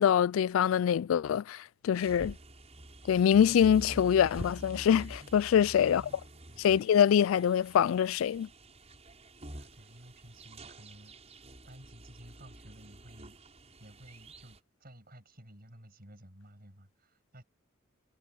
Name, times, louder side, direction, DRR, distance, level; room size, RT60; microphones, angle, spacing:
voice 1, 0.0-2.3 3.1-6.0 6.6-8.5, left 8 dB, 85° left, 0.3 m, -24 dB
sound 1, 1.9-14.6, right 1 dB, 35° right, 6.2 m, -47 dB
voice 2, 5.6-6.7 9.5-11.2 11.7-13.4 13.8-17.4, equal, 50° right, 7.0 m, -54 dB
head